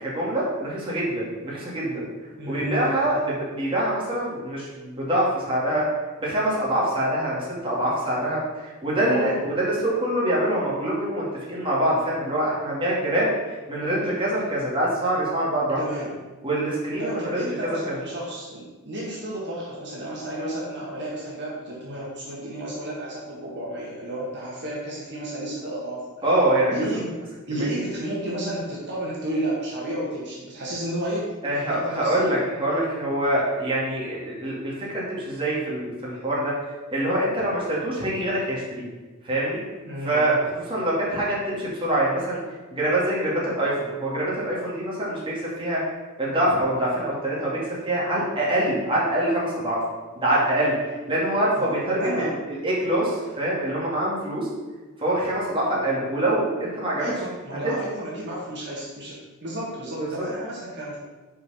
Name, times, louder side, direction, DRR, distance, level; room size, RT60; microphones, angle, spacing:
voice 1, 0.0-2.1 2.5-5.9 6.2-13.3 13.7-15.8 16.4-18.0 26.2-27.0 27.5-27.7 31.4-36.5 36.9-38.8 39.2-39.6 40.0-42.4 42.7-45.8 46.2-49.8 50.2-50.7 51.1-54.5 55.0-57.1 57.6-57.8 60.0-60.2, right 1 dB, 25° right, -6 dB, 2.4 m, -25 dB
voice 2, 2.4-3.0 8.9-9.4 15.8-16.1 17.0-26.1 26.7-32.2 39.8-40.3 51.5-52.4 57.0-61.0, right 1 dB, 55° right, -5 dB, 1.9 m, -32 dB
6.6 x 4.8 x 5.6 m, 1.3 s
head